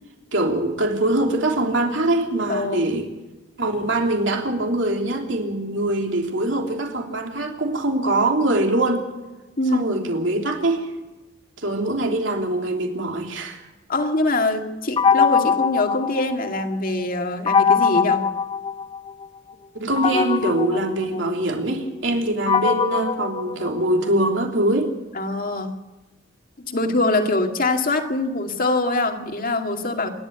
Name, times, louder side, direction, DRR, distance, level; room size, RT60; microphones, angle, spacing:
voice 1, 0.3-3.1 3.6-9.0 9.7-10.9 11.6-13.6 19.7-24.9, right 1 dB, 70° right, 3 dB, 3.3 m, -23 dB
voice 2, 2.5-3.0 9.6-9.9 13.9-18.2 25.1-25.7 26.6-30.1, left 2 dB, 50° left, 4 dB, 2.3 m, -23 dB
sound 1, 15.0-16.8 17.5-19.3 20.0-24.2, left 6 dB, 30° left, 0.6 m, -22 dB
27.5 x 12.0 x 8.3 m, 1.1 s
head